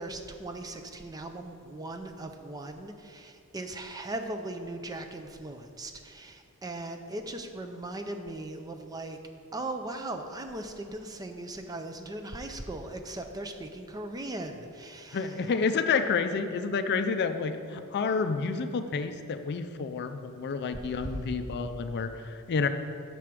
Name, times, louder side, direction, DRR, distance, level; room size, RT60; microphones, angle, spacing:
voice 1, 0.0-9.2 9.5-15.3 20.9-21.2, right 2 dB, 15° right, 5 dB, 0.4 m, -38 dB
voice 2, 15.1-22.7, left 5 dB, 50° left, 8 dB, 0.4 m, -29 dB
6.9 x 4.9 x 5.9 m, 2.4 s
head